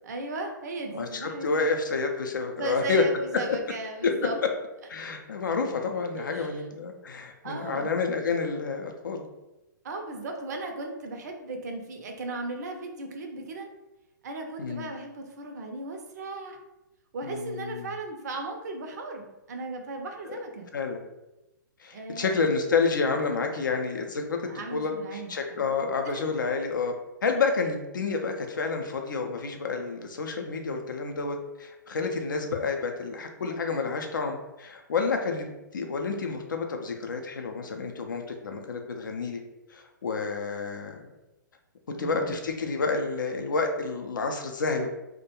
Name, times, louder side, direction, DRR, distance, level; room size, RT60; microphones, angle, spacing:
voice 1, 0.0-1.8 2.6-4.5 6.2-6.6 7.4-8.0 9.8-13.7 14.2-16.6 17.1-20.7 21.9-22.6 24.5-25.7 26.1-26.3 41.9-42.4, right 2 dB, 55° right, 3 dB, 0.5 m, -36 dB
voice 2, 0.9-3.0 4.0-4.3 4.9-9.3 14.6-14.9 17.2-17.9 20.7-21.0 21.8-24.4 24.7-26.9 27.2-39.4 39.7-41.0 41.9-44.9, left 4 dB, 70° left, 4 dB, 0.4 m, -29 dB
2.3 x 2.1 x 2.8 m, 0.96 s
figure-of-eight pair, 120°, 11 cm